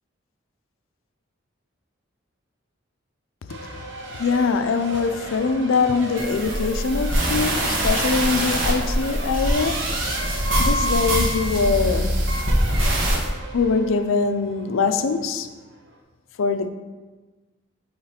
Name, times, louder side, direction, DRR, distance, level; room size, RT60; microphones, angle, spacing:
Race car auto racing / Accelerating revving vroom / Mechanisms, 3.5-16.0, right 2 dB, 65° right, 0.9 m, -38 dB
voice 1, 4.2-9.9 10.6-12.3 13.5-15.5 16.4-16.7, left 4 dB, 85° left, 8 dB, 0.5 m, -23 dB
sound 1, 6.2-13.3, right 1 dB, 80° right, 1.4 m, -23 dB
8.0 x 3.1 x 4.3 m, 1.3 s
head